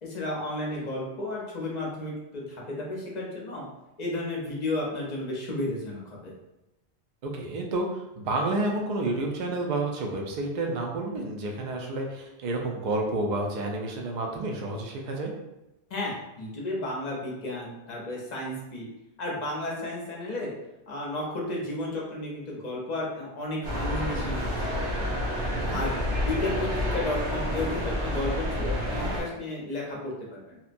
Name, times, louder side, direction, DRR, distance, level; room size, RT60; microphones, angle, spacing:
voice 1, 0.0-3.7 4.0-6.3 15.9-18.9 19.2-20.5 20.9-24.5 24.9-25.1 25.7-30.6, left 2 dB, 45° left, -3 dB, 0.6 m, -33 dB
voice 2, 7.2-15.3 25.5-25.8, right 2 dB, 55° right, 1 dB, 0.5 m, -30 dB
sound 1, 23.6-29.2, equal, 85° right, 1.0 m, -29 dB
2.8 x 2.1 x 2.5 m, 0.95 s
omnidirectional pair, 1.1 m